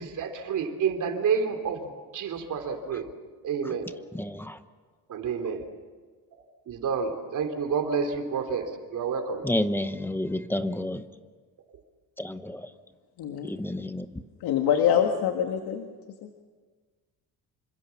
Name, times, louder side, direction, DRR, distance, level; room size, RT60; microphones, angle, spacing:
voice 1, 0.0-3.1 3.4-3.9 5.1-5.7 6.7-9.5, right 6 dB, 50° right, 5 dB, 3.3 m, -29 dB
voice 2, 4.1-4.6 9.4-11.0 12.2-12.7 13.4-14.2, left 1 dB, 5° left, 10 dB, 0.9 m, -30 dB
voice 3, 13.2-13.5 14.4-15.9 16.2-16.3, left 8 dB, 75° left, 4 dB, 1.9 m, -25 dB
27.5 x 25.5 x 7.2 m, 1.5 s
cardioid pair, 160°, 38 cm